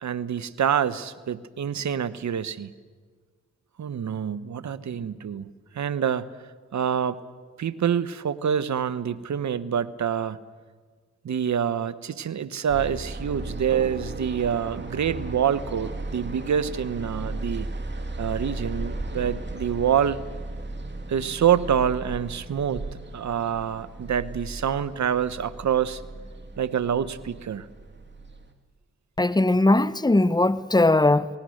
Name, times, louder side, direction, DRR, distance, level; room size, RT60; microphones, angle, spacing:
voice 1, 0.0-2.7 3.8-5.5 5.7-6.3 6.7-7.2 7.6-10.4 11.2-17.7 18.2-20.2 21.1-22.9 23.1-26.0 26.6-27.7, right 8 dB, 70° right, 1.1 m, -26 dB
sound 1, 12.7-28.5, right 2 dB, 35° right, 2.8 m, -36 dB
voice 2, 29.2-31.3, left 2 dB, 15° left, 0.9 m, -19 dB
28.0 x 19.5 x 6.5 m
supercardioid pair, 40°, 30 cm